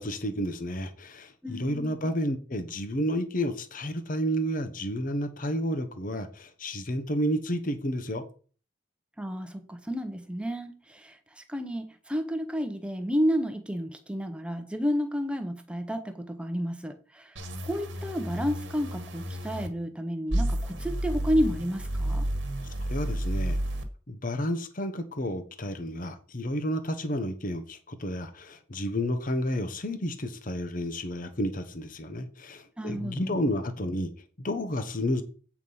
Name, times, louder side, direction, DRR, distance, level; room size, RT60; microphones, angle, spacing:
voice 1, 0.0-8.2 22.9-23.6 24.1-34.1 34.4-35.2, equal, 40° left, 0.9 m, -31 dB
voice 2, 1.4-1.9 9.2-17.3 17.6-22.2 32.8-33.4, equal, 5° right, 0.8 m, -31 dB
sound 1, 17.4-19.7 20.3-23.8, right 1 dB, 60° right, 1.4 m, -31 dB
8.3 x 4.8 x 5.4 m
head